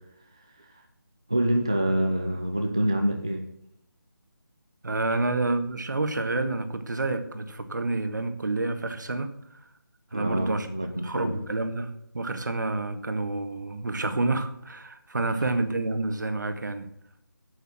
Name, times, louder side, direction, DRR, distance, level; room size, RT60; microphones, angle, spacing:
voice 1, 1.3-3.4 10.1-11.4, right 1 dB, 15° right, 3 dB, 0.4 m, -26 dB
voice 2, 4.8-9.3 10.1-10.7 11.0-16.9, right 2 dB, 55° right, 9 dB, 1.5 m, -29 dB
8.4 x 8.0 x 7.6 m, 0.77 s
figure-of-eight pair, 175°, 11 cm